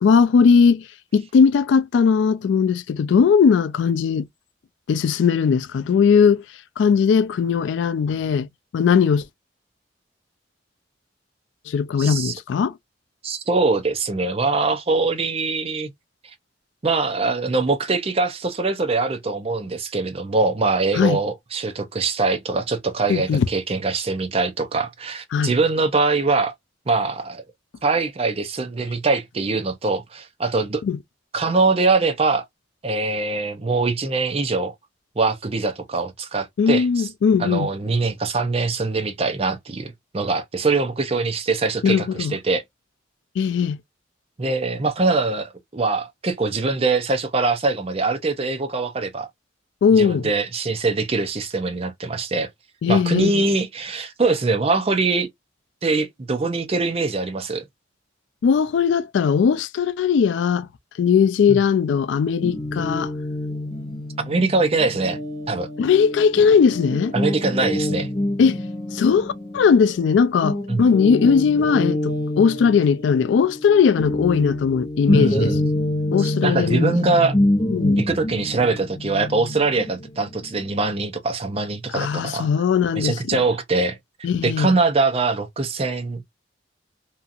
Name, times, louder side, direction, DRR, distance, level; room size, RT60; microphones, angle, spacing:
voice 1, 0.0-0.9 1.1-4.3 4.9-6.4 6.8-8.5 8.7-9.2 11.7-12.8 20.9-21.2 23.1-23.5 25.3-25.5 30.8-31.0 36.6-37.7 41.8-42.3 43.4-43.8 49.8-50.3 52.8-53.4 58.4-60.7 61.0-63.1 65.8-67.1 68.4-68.6 68.9-75.6 76.1-76.9 77.7-78.0 81.9-83.4 84.2-84.7, left 6 dB, 75° left, 0.3 m, -19 dB
voice 2, 12.0-12.3 13.2-15.9 16.8-26.5 26.9-27.4 27.8-30.8 31.3-32.4 32.8-34.7 35.2-37.1 37.4-42.6 44.4-49.3 49.9-52.5 52.9-55.3 55.8-57.6 61.5-61.6 64.2-65.2 65.5-65.7 67.1-68.1 70.7-70.8 75.1-75.6 76.2-77.3 78.0-82.5 82.9-86.2, right 3 dB, 30° right, 0.5 m, -23 dB
Guitar, 62.4-70.1 70.4-80.9, left 1 dB, 25° left, 0.7 m, -26 dB
2.7 x 2.4 x 2.5 m
head